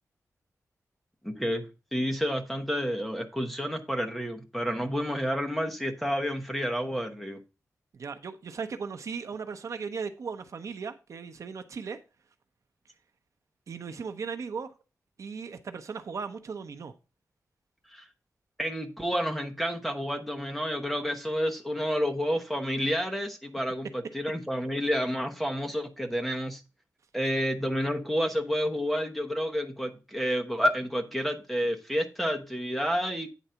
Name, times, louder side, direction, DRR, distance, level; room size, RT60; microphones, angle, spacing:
voice 1, 1.2-1.6 1.9-7.4 17.9-18.0 18.6-26.6 27.1-33.3, equal, ahead, 1.0 m, -30 dB
voice 2, 7.9-12.0 13.7-14.7 15.2-16.9, right 5 dB, 60° right, 0.7 m, -37 dB
9.1 x 4.0 x 5.6 m
wide cardioid pair, 175°, 6 cm